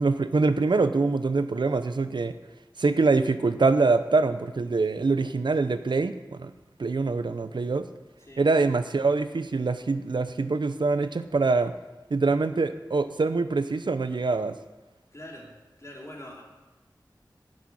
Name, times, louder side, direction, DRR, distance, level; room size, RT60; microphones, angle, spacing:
voice 1, 0.0-2.3 2.8-6.5 6.8-7.9 8.4-11.7 12.1-14.6, right 3 dB, 75° right, 11 dB, 0.7 m, -24 dB
voice 2, 15.1-16.4, left 1 dB, 40° left, -2 dB, 3.4 m, -44 dB
12.0 x 6.3 x 8.6 m, 1.1 s
wide cardioid pair, 50°, 8 cm